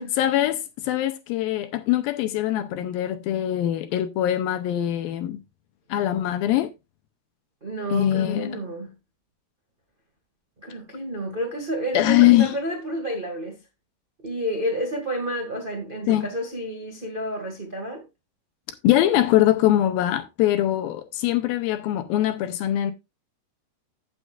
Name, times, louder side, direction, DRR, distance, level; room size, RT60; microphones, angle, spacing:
voice 1, 0.2-5.4 5.9-6.7 7.9-8.6 11.9-12.6 16.1-16.3 18.8-22.9, left 13 dB, 80° left, 2.4 m, -22 dB
voice 2, 7.6-8.9 10.6-13.6 14.2-18.1, right 1 dB, 45° right, 0.6 m, -30 dB
15.0 x 6.4 x 2.4 m
omnidirectional pair, 4.6 m